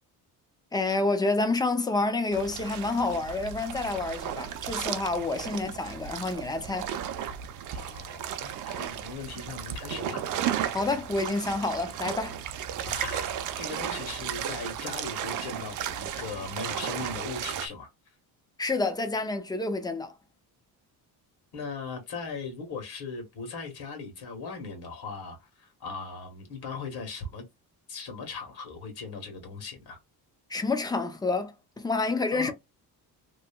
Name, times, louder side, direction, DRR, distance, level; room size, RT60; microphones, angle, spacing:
voice 1, 0.7-6.9 10.7-12.4 18.6-20.1 30.5-32.5, left 3 dB, 10° left, 0.3 m, -28 dB
sound 1, 2.3-17.7, right 9 dB, 50° right, 0.5 m, -34 dB
voice 2, 7.7-10.2 10.6-10.7 12.8-17.9 21.5-27.4 27.9-30.0 32.3-32.5, left 4 dB, 70° left, 1.5 m, -39 dB
3.0 x 2.5 x 2.2 m
cardioid pair, 155°, 40 cm